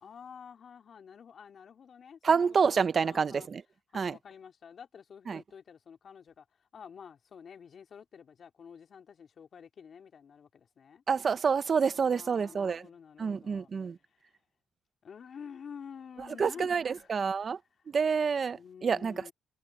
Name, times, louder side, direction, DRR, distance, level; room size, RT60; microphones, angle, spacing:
voice 1, 0.0-3.5 3.9-11.0 11.9-13.7 14.0-14.4 15.0-17.1 18.5-19.3, left 7 dB, 50° left, 2.6 m, -50 dB
voice 2, 2.2-3.6 3.9-4.2 5.3-5.4 11.1-12.9 13.2-14.0 16.4-17.6 17.9-19.3, right 6 dB, 45° right, 0.7 m, -28 dB
cardioid pair, 90°, 0 cm